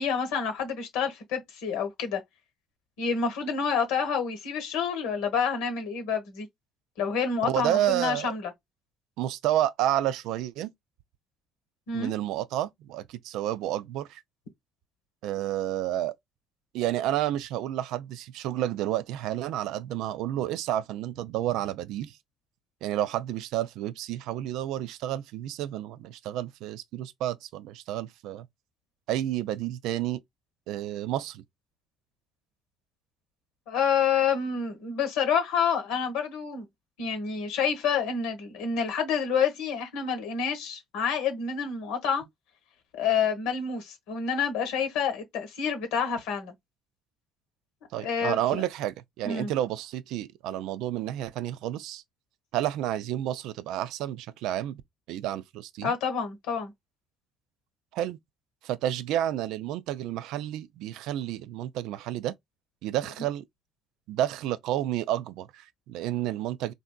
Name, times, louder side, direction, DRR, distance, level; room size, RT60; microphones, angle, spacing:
voice 1, 0.0-2.2 3.0-6.5 7.0-8.5 11.9-12.1 33.7-36.7 37.0-42.2 42.9-46.5 48.0-48.6 49.2-49.5 55.8-56.7, left 6 dB, 80° left, 1.0 m, -28 dB
voice 2, 7.4-8.3 9.2-10.7 11.9-14.2 15.2-16.1 16.7-22.2 22.8-28.5 29.1-30.2 30.7-31.4 47.9-52.0 52.5-54.8 55.1-55.9 57.9-58.2 58.6-62.3 62.8-63.4 64.1-66.7, right 12 dB, 75° right, 0.3 m, -30 dB
3.3 x 2.6 x 2.2 m
hypercardioid pair, 65°, 0 cm